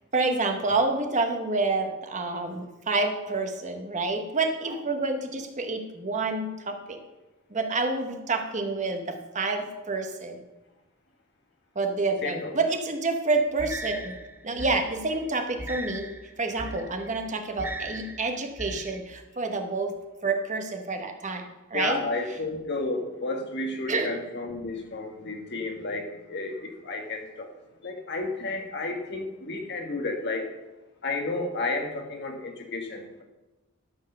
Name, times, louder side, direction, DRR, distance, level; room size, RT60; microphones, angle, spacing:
voice 1, 0.1-7.0 7.5-10.4 11.7-14.1 14.4-20.0 20.2-22.0 23.9-24.1, right 3 dB, 35° right, 5 dB, 1.2 m, -28 dB
sound 1, 13.6-19.0, right 1 dB, 10° right, 0.5 m, -39 dB
voice 2, 21.7-27.5 27.8-30.5 31.0-33.2, left 2 dB, 50° left, 3 dB, 1.5 m, -32 dB
13.0 x 4.6 x 6.6 m, 1.1 s
head